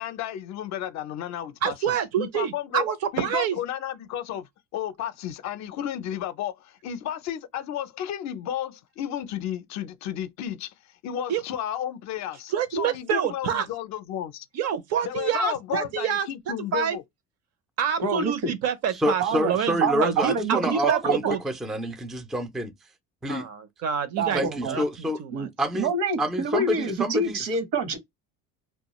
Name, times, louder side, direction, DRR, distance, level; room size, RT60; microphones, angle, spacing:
voice 1, 0.0-2.9 3.1-10.7 11.0-14.5 15.0-17.0, left 10 dB, 55° left, 0.5 m, -33 dB
voice 2, 1.6-3.5 11.3-11.4 12.5-13.7 14.5-16.3 16.7-17.0 17.8-21.4 23.3-25.5, right 8 dB, 50° right, 0.6 m, -27 dB
voice 3, 18.0-18.5 19.2-19.5 19.8-21.3 24.2-24.8 25.3-25.5 25.7-28.0, right 4 dB, 70° right, 1.1 m, -26 dB
voice 4, 18.9-22.7 23.2-23.5 24.3-25.2 25.6-25.9 26.2-27.4, equal, ahead, 0.3 m, -27 dB
2.3 x 2.2 x 2.9 m
cardioid pair, 135°, 33 cm